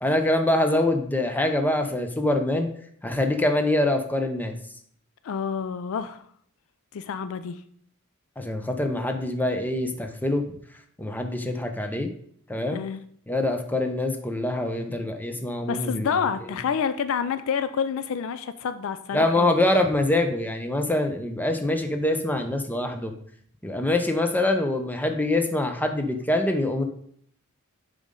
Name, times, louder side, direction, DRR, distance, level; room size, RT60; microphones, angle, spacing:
voice 1, 0.0-2.7 3.0-4.5 8.4-10.4 11.0-12.1 12.5-12.8 13.3-16.2 19.1-23.1 23.6-26.8, left 1 dB, 10° left, 5 dB, 0.6 m, -24 dB
voice 2, 5.2-6.2 6.9-7.6 12.7-13.0 15.7-19.5, left 6 dB, 60° left, 12 dB, 0.3 m, -28 dB
7.1 x 5.2 x 3.7 m, 0.63 s
head